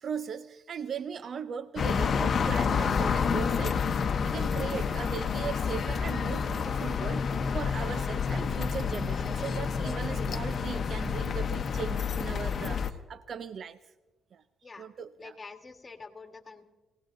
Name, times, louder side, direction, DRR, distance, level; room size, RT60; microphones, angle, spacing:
voice 1, 0.0-13.8 14.3-14.4 14.8-15.4, right 7 dB, 55° right, 13 dB, 0.5 m, -38 dB
sound 1, 1.8-12.9, left 6 dB, 50° left, 0.8 m, -29 dB
voice 2, 15.2-16.6, left 4 dB, 30° left, 6 dB, 1.5 m, -46 dB
25.5 x 17.5 x 2.6 m, 1.2 s
cardioid pair, 90°, 0 cm